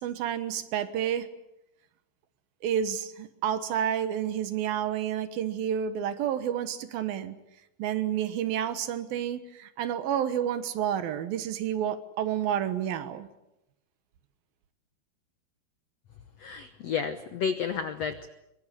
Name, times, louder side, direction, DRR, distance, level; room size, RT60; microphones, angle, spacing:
voice 1, 0.0-1.3 2.6-7.4 7.8-13.3, right 9 dB, 70° right, 11 dB, 3.0 m, -30 dB
voice 2, 16.4-18.3, left 6 dB, 90° left, 10 dB, 1.4 m, -31 dB
24.0 x 23.0 x 8.4 m, 0.88 s
omnidirectional pair, 4.6 m